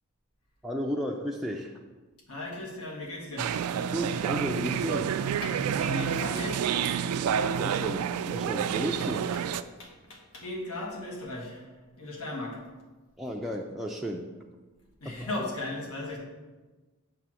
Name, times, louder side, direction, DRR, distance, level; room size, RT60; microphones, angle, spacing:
voice 1, 0.6-1.7 3.9-5.2 7.6-9.2 13.2-14.3 15.0-15.5, equal, ahead, -1 dB, 0.3 m, -33 dB
voice 2, 2.3-3.5 5.4-6.9 9.8-11.7 12.0-12.6 15.0-16.2, left 2 dB, 85° left, -3 dB, 1.6 m, -37 dB
sound 1, 3.4-9.6, right 8 dB, 85° right, 0.3 m, -29 dB
6.9 x 3.4 x 6.1 m, 1.2 s
head